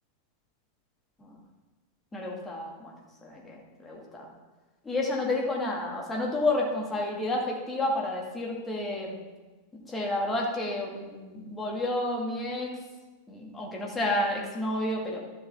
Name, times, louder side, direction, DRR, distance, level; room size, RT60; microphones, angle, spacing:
voice 1, 2.1-2.9 3.2-4.3 4.8-9.2 9.9-12.7 13.3-15.2, left 2 dB, 15° left, -2 dB, 2.1 m, -30 dB
12.5 x 6.6 x 3.6 m, 1.2 s
figure-of-eight pair, 90°, 0 cm